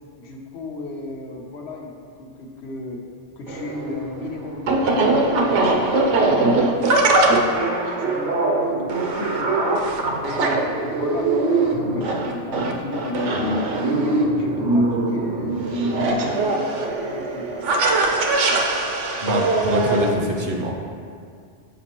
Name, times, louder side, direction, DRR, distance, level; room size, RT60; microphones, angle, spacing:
voice 1, 0.2-3.0 3.4-6.4 6.8-9.9 10.2-11.3 11.7-13.6 13.9-17.7, left 2 dB, 65° left, 0 dB, 1.0 m, -34 dB
sound 1, 3.5-20.1, right 2 dB, 85° right, 1.0 m, -21 dB
voice 2, 19.2-20.8, equal, 55° right, 1 dB, 0.7 m, -24 dB
7.4 x 5.1 x 2.9 m, 2.2 s
omnidirectional pair, 1.2 m